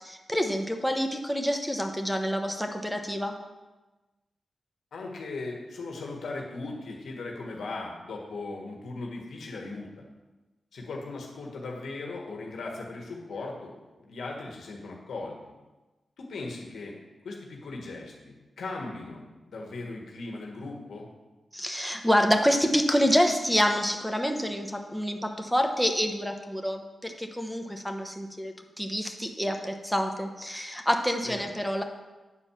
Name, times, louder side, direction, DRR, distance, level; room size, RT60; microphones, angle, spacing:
voice 1, 0.0-3.3 21.5-31.8, equal, ahead, 4 dB, 1.0 m, -27 dB
voice 2, 4.9-10.0 10.7-15.4 16.2-17.0 17.2-21.1 31.2-31.5, left 3 dB, 85° left, 0 dB, 1.5 m, -38 dB
9.4 x 4.4 x 7.2 m, 1.1 s
wide cardioid pair, 90°, 0 cm